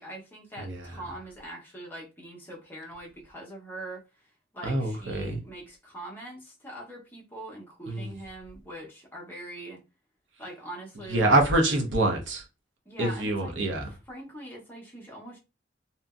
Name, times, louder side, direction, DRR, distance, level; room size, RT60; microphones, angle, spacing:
voice 1, 0.0-9.8 10.4-11.4 12.8-13.6 13.9-15.4, right 1 dB, 10° left, 0.8 m, -42 dB
voice 2, 4.6-5.4 7.9-8.1 11.1-12.4 13.0-13.9, right 2 dB, 85° right, 0.8 m, -25 dB
2.8 x 2.6 x 2.4 m
head